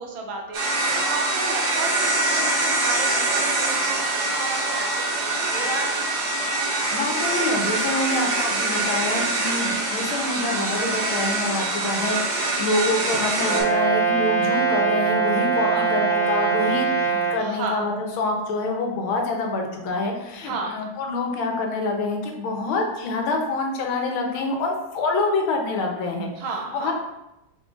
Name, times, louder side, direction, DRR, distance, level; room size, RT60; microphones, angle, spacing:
voice 1, 0.0-5.0 5.3-6.1 12.5-13.1 15.7-15.9 17.4-17.8 20.4-20.7 26.4-26.9, right 3 dB, 75° right, 2 dB, 1.5 m, -33 dB
sound 1, 0.5-13.6, right 2 dB, 60° right, 1.5 m, -24 dB
voice 2, 6.9-26.3 26.7-26.9, left 2 dB, 85° left, 2 dB, 1.6 m, -26 dB
Brass instrument, 13.4-17.4, right 6 dB, 40° right, 0.7 m, -22 dB
5.2 x 3.8 x 2.4 m, 0.91 s
omnidirectional pair, 2.2 m